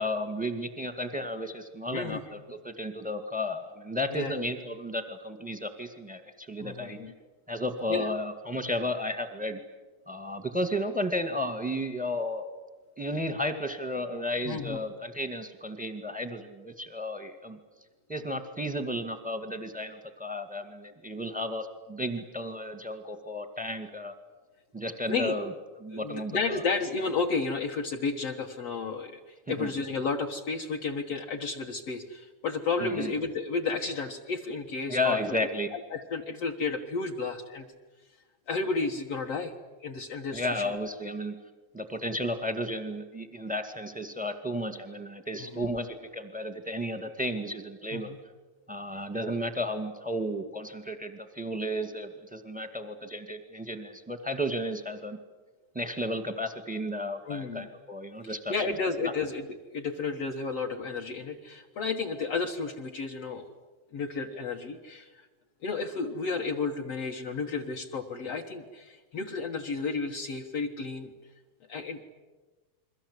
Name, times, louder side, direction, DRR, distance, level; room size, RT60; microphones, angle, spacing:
voice 1, 0.0-2.4 2.6-7.0 7.5-9.6 10.1-12.4 13.0-17.6 18.1-24.1 24.7-25.5 25.8-26.6 29.5-29.7 32.8-33.1 34.9-35.7 40.3-41.3 41.7-48.1 48.7-55.2 55.7-58.5, left 1 dB, 5° right, 8 dB, 1.1 m, -33 dB
voice 2, 1.9-2.2 4.1-4.4 6.6-7.1 7.9-8.1 14.4-14.8 25.1-25.4 25.9-29.2 29.5-37.7 38.5-39.5 39.8-40.7 45.4-45.6 47.9-48.2 57.3-57.7 58.3-59.5 59.7-63.4 63.9-65.3 65.6-71.1 71.7-72.0, left 4 dB, 55° left, 0 dB, 2.2 m, -32 dB
29.5 x 23.0 x 8.3 m, 1.2 s
omnidirectional pair, 3.9 m